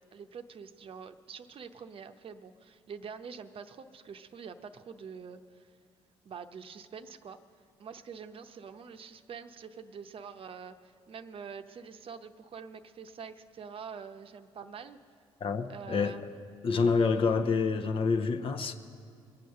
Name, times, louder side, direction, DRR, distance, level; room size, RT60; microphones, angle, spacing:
voice 1, 0.1-5.7 6.2-7.4 7.8-15.0 15.7-16.4 17.2-17.4, right 6 dB, 50° right, 0.7 m, -46 dB
voice 2, 15.4-16.3 16.6-18.7, left 4 dB, 50° left, 0.8 m, -27 dB
22.5 x 7.8 x 6.5 m
hypercardioid pair, 55°, 12 cm